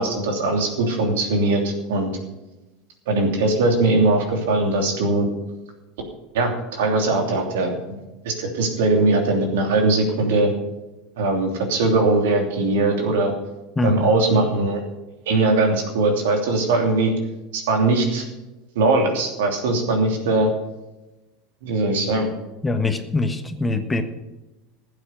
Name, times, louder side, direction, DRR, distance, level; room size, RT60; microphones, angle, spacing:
voice 1, 0.0-2.1 3.1-5.3 6.3-7.7 8.2-10.5 11.2-13.3 13.8-14.8 15.3-17.1 17.5-18.2 18.7-20.5 21.6-22.3, right 2 dB, 70° right, 3 dB, 3.0 m, -20 dB
voice 2, 13.8-14.1 22.6-24.0, left 2 dB, 15° left, 7 dB, 1.4 m, -23 dB
15.0 x 8.3 x 6.6 m, 1.0 s
hypercardioid pair, 80°, 0 cm